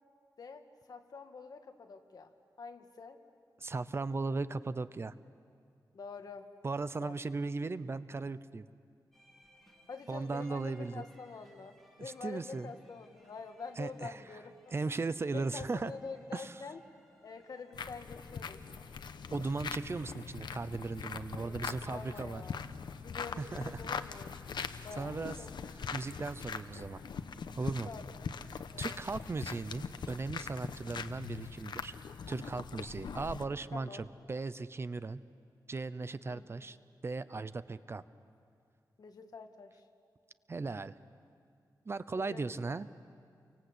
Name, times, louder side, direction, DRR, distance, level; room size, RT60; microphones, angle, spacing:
voice 1, 0.4-2.3 2.6-3.2 5.9-6.5 7.0-7.2 9.9-14.9 15.3-16.8 17.2-18.6 21.4-22.6 22.9-24.4 24.8-25.5 27.9-28.1 28.7-29.0 33.7-34.1 36.3-36.6 39.0-39.8 42.2-42.9, left 4 dB, 60° left, 6 dB, 1.8 m, -47 dB
voice 2, 3.6-5.1 6.6-8.6 10.1-11.0 12.0-12.7 13.8-14.2 14.7-15.9 16.3-16.5 19.3-22.4 23.4-23.9 25.0-25.4 25.9-27.0 27.6-27.9 28.5-31.9 32.3-35.2 35.7-36.8 37.0-38.0 40.5-40.9 41.9-42.9, right 3 dB, 35° right, 14 dB, 0.6 m, -37 dB
sound 1, 9.1-21.2, equal, 5° left, 3.5 m, -66 dB
sound 2, 17.7-33.5, left 6 dB, 80° left, 1.0 m, -42 dB
29.5 x 24.5 x 8.2 m, 2.3 s
wide cardioid pair, 150°, 8 cm